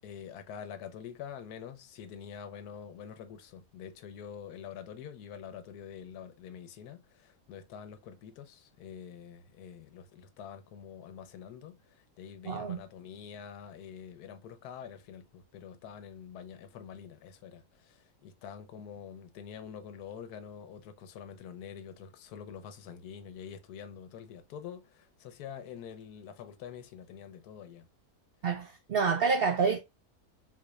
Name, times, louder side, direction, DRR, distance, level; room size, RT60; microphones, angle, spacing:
voice 1, 0.0-27.9, left 8 dB, 80° left, 1.2 m, -46 dB
voice 2, 12.5-12.8 28.4-29.8, right 5 dB, 70° right, 0.5 m, -28 dB
4.0 x 3.1 x 2.2 m
omnidirectional pair, 1.6 m